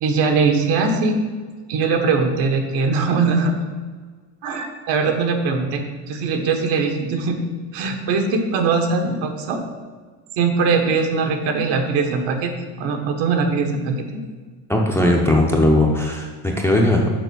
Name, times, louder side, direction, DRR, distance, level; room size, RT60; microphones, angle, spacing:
voice 1, 0.0-1.2 1.7-3.6 4.4-7.4 7.7-9.6 10.4-12.5 12.8-14.2, right 4 dB, 65° right, 4 dB, 1.4 m, -21 dB
voice 2, 14.7-17.1, left 1 dB, 5° left, 0 dB, 0.5 m, -18 dB
6.9 x 6.1 x 6.0 m, 1.5 s
cardioid pair, 160°, 47 cm